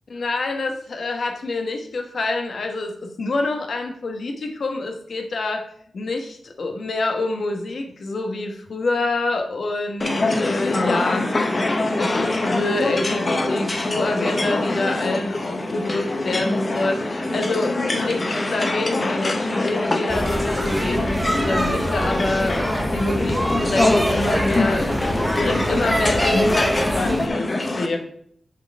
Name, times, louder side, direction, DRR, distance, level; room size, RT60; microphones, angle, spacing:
voice 1, 0.1-5.6 5.9-11.5 11.9-18.2 18.5-24.9 25.4-28.0, left 2 dB, 60° left, 4 dB, 1.0 m, -26 dB
sound 1, 10.0-27.9, left 2 dB, 30° left, 0.8 m, -24 dB
sound 2, 20.1-27.3, equal, 5° right, 0.6 m, -24 dB
6.9 x 4.5 x 5.1 m, 0.68 s
wide cardioid pair, 115°, 0 cm